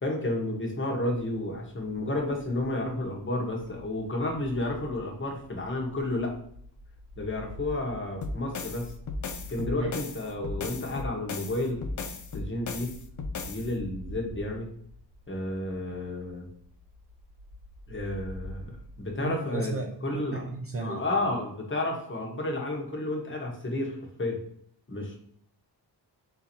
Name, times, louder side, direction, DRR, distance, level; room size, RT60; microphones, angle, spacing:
voice 1, 0.0-6.3 7.2-8.9 9.5-11.8 12.3-12.9 13.5-14.7 15.3-16.5 17.9-20.4 20.8-24.4 24.9-25.2, left 2 dB, 30° left, 0 dB, 1.1 m, -31 dB
sound 1, 3.8-19.4, left 1 dB, 20° right, 1.3 m, -47 dB
sound 2, 8.2-13.7, left 4 dB, 45° left, 0.5 m, -36 dB
voice 2, 19.2-21.2, right 3 dB, 35° right, 2 dB, 0.5 m, -34 dB
3.9 x 2.8 x 4.3 m, 0.65 s
wide cardioid pair, 145°, 42 cm